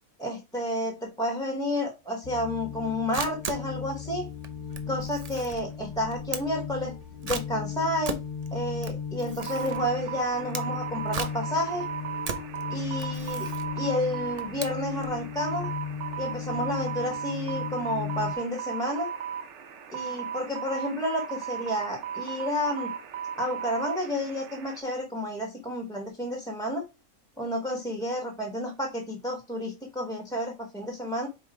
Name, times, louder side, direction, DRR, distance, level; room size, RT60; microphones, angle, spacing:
voice 1, 0.2-4.3 4.9-6.9 7.2-8.2 8.5-11.8 12.7-13.5 13.8-15.7 16.2-19.1 19.9-22.9 23.4-26.8 27.4-31.3, equal, 5° left, 3 dB, 1.0 m, -30 dB
sound 1, 2.2-18.3, left 7 dB, 75° left, 0.4 m, -36 dB
Camera, 2.8-15.2, right 4 dB, 40° right, 0.6 m, -39 dB
sound 2, 9.4-24.8, right 8 dB, 60° right, 1.0 m, -36 dB
5.4 x 3.8 x 4.7 m, 0.25 s
omnidirectional pair, 1.5 m